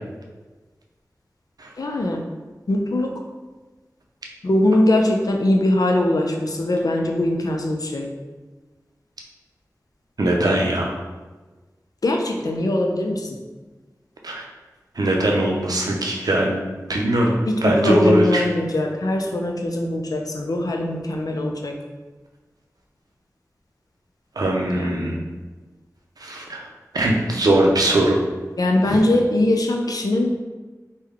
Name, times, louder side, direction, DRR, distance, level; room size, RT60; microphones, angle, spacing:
voice 1, 1.8-2.2 2.7-3.1 4.4-8.1 12.0-13.3 17.5-21.8 24.7-25.2 28.6-30.3, left 1 dB, 75° left, 2 dB, 0.4 m, -21 dB
voice 2, 10.2-11.0 14.2-14.4 15.0-17.4 17.6-18.4 24.4-25.2 26.2-26.6 26.9-28.2 28.9-29.0, right 1 dB, 85° right, 0 dB, 0.5 m, -20 dB
3.4 x 2.2 x 3.4 m, 1.3 s
wide cardioid pair, 45°, 6 cm